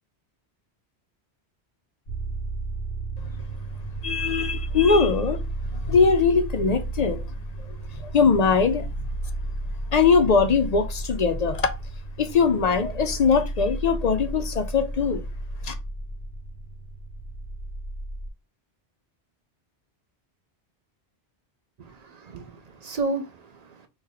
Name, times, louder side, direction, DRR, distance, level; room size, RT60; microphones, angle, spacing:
sound 1, 2.1-18.3, right 2 dB, 85° left, 1.6 m, -33 dB
voice 1, 4.0-5.4 5.9-7.2 8.0-8.9 9.9-11.7 12.2-15.2 15.6-15.7, left 5 dB, 55° left, 0.5 m, -21 dB
voice 2, 21.8-23.9, right 3 dB, 55° right, 0.4 m, -33 dB
3.1 x 3.0 x 3.6 m
omnidirectional pair, 1.1 m